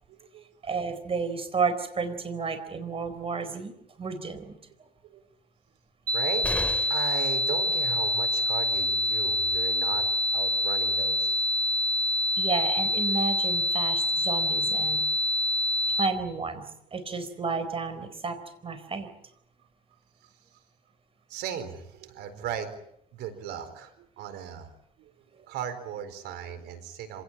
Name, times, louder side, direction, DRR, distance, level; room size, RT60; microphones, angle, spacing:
voice 1, 0.6-4.6 12.4-15.0 15.9-16.6 16.9-19.1, right 4 dB, 35° right, 11 dB, 4.3 m, -31 dB
sound 1, 6.1-16.1, left 1 dB, 65° right, 2.1 m, -26 dB
voice 2, 6.1-6.5 6.8-10.1 10.3-11.4 21.3-22.8 23.1-24.7 25.0-25.1 25.5-27.2, right 9 dB, 85° right, 9 dB, 4.4 m, -37 dB
sound 2, 6.4-7.2 9.1-9.2 9.5-9.6, left 1 dB, 10° left, 2.7 m, -34 dB
26.5 x 18.0 x 8.9 m, 0.73 s
cardioid pair, 110°, 17 cm